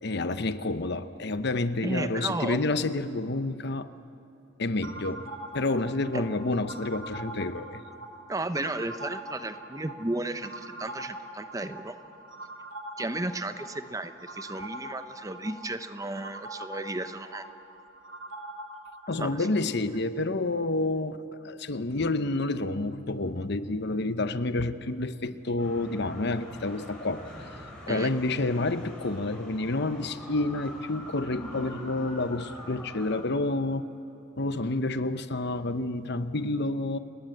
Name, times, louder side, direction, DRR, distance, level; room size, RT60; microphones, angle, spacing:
voice 1, 0.0-3.9 4.6-5.3 5.5-7.8 19.1-21.2 21.4-27.3 27.9-33.9 34.4-37.0, left 2 dB, 55° left, 12 dB, 0.9 m, -29 dB
voice 2, 1.8-2.6 8.3-11.9 13.0-17.4 19.2-19.5 27.9-28.1, right 2 dB, 15° right, 10 dB, 0.8 m, -34 dB
sound 1, 4.8-19.6, right 1 dB, 75° right, 2.0 m, -43 dB
sound 2, 25.6-33.2, left 1 dB, 5° left, 5.9 m, -44 dB
29.0 x 20.0 x 8.0 m, 2.8 s
head